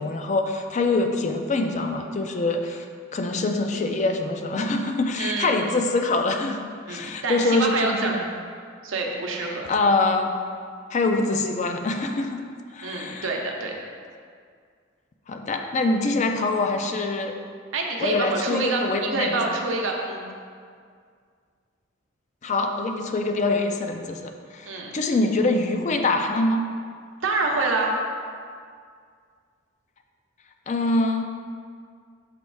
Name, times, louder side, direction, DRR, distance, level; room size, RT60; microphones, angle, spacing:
voice 1, 0.0-2.9 3.1-8.3 9.4-10.4 10.9-12.4 12.7-13.3 15.3-17.4 18.0-19.4 22.4-26.7 30.7-31.2, left 2 dB, 35° left, 4 dB, 0.4 m, -24 dB
voice 2, 5.2-5.7 6.9-8.2 8.8-9.7 12.8-13.9 17.7-20.3 24.6-24.9 27.2-28.0, right 3 dB, 85° right, 0 dB, 0.8 m, -27 dB
6.7 x 3.1 x 4.6 m, 2.1 s
head